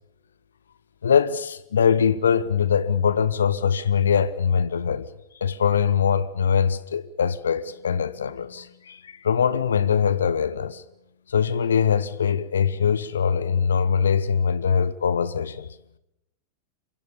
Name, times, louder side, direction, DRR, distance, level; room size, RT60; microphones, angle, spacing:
voice 1, 1.0-5.1 5.3-10.8 11.3-15.7, left 7 dB, 70° left, 1.0 m, -22 dB
27.5 x 24.0 x 7.0 m
figure-of-eight pair, 90°, 0 cm